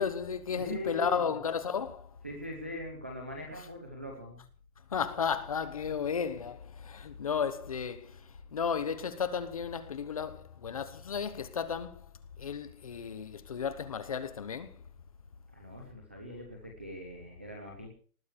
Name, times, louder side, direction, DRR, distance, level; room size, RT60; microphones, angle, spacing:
voice 1, 0.0-2.2 3.6-3.7 4.9-12.1 12.4-14.8, left 6 dB, 25° left, 1.0 m, -34 dB
voice 2, 0.6-1.3 2.2-4.4 15.5-17.9, equal, 10° right, 0.7 m, -41 dB
19.5 x 9.4 x 7.3 m
hypercardioid pair, 175°, 43 cm